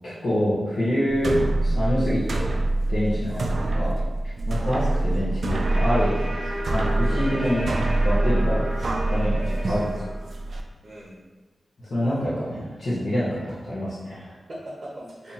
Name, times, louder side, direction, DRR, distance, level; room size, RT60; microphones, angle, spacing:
voice 1, 0.0-1.3 1.6-2.5 2.9-3.9 4.5-6.2 6.7-7.7 8.0-8.6 9.1-10.0 11.9-14.3, equal, 65° left, -12 dB, 0.9 m, -26 dB
sound 1, 1.1-10.6, right 2 dB, 55° right, 0.3 m, -25 dB
voice 2, 3.3-3.6 7.0-7.4 10.8-11.2 11.8-12.2 14.5-15.3, equal, 35° right, -6 dB, 0.8 m, -41 dB
sound 2, 5.6-10.5, equal, 20° right, 1.1 m, -35 dB
2.8 x 2.7 x 3.8 m, 1.3 s
wide cardioid pair, 125°, 0 cm